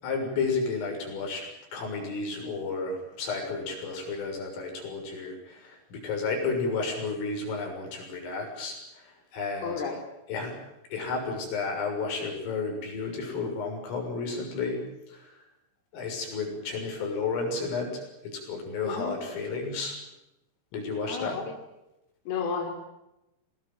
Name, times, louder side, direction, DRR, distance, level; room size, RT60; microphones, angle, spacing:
voice 1, 0.0-9.8 10.3-10.5 10.9-14.8 15.1-15.3 15.9-20.0 20.7-21.4, left 4 dB, 80° left, 2 dB, 9.3 m, -32 dB
voice 2, 9.6-10.0 18.8-19.1 21.1-21.5 22.3-22.7, left 5 dB, 50° left, 2 dB, 5.2 m, -32 dB
25.5 x 20.0 x 9.2 m, 0.90 s
omnidirectional pair, 5.8 m